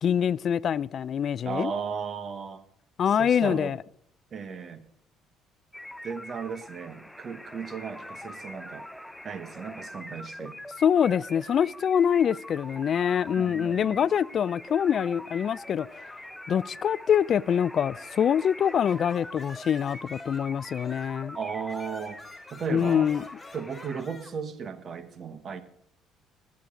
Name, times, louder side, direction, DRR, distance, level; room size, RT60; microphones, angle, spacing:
voice 1, 0.0-1.7 3.0-3.8 10.8-16.1 16.5-21.4 22.7-23.2, left 8 dB, 50° left, 0.4 m, -25 dB
voice 2, 1.4-2.6 3.1-3.8 4.3-4.9 6.0-8.9 9.2-10.6 13.3-14.1 21.3-22.2 22.5-23.1 23.5-25.6, right 6 dB, 45° right, 1.3 m, -35 dB
sound 1, 5.7-24.0, left 1 dB, 5° left, 0.6 m, -43 dB
sound 2, 18.4-21.2 21.7-24.3, left 4 dB, 20° left, 3.3 m, -50 dB
20.0 x 8.5 x 3.8 m
cardioid pair, 90°, 0 cm